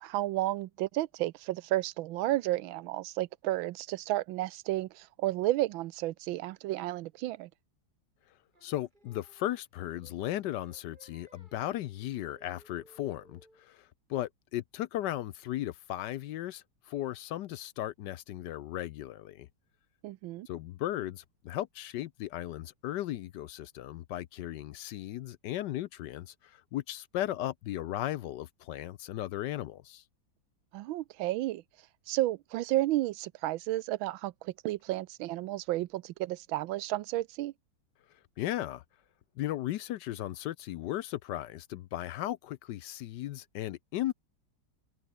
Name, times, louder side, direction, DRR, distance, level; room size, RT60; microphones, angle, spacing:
voice 1, 0.0-7.5 20.0-20.5 30.7-31.6 32.1-37.5, right 16 dB, 85° right, 1.4 m, -32 dB
Singing, 8.5-13.7, right 1 dB, 25° right, 6.7 m, -62 dB
voice 2, 8.6-19.5 20.5-30.0 38.4-38.8 39.4-44.1, left 13 dB, 75° left, 1.1 m, -36 dB
omnidirectional pair, 2.1 m